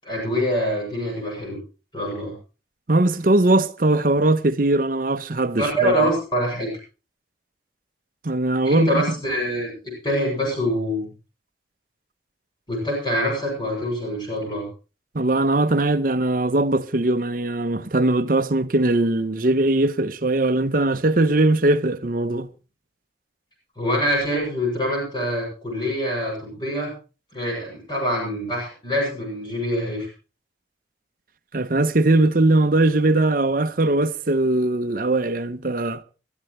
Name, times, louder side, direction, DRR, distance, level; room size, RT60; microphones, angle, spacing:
voice 1, 0.0-1.6 1.9-2.3 5.6-6.7 8.6-11.1 12.7-14.7 23.8-26.9 27.3-30.1, equal, 25° left, 7.2 m, -25 dB
voice 2, 2.9-6.1 8.2-9.0 15.1-22.5 31.5-36.0, right 2 dB, 50° right, 0.8 m, -20 dB
22.0 x 13.5 x 3.2 m
head